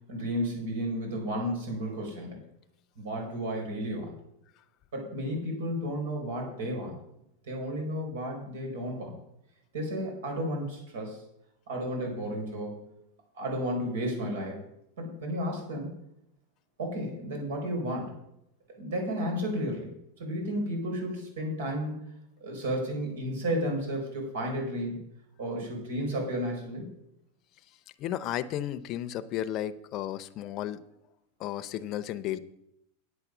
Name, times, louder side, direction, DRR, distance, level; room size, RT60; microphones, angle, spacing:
voice 1, 0.1-2.4 3.0-4.1 4.9-6.9 7.4-9.1 9.7-11.2 11.7-12.8 13.3-14.7 15.0-15.9 16.8-18.2 18.8-19.9 20.2-22.0 22.4-25.0 25.4-26.9, equal, 80° right, 2 dB, 4.8 m, -32 dB
voice 2, 28.0-30.9 31.4-32.4, left 12 dB, 40° left, 13 dB, 0.7 m, -33 dB
9.5 x 8.1 x 6.1 m, 0.81 s
supercardioid pair, 135°, 0 cm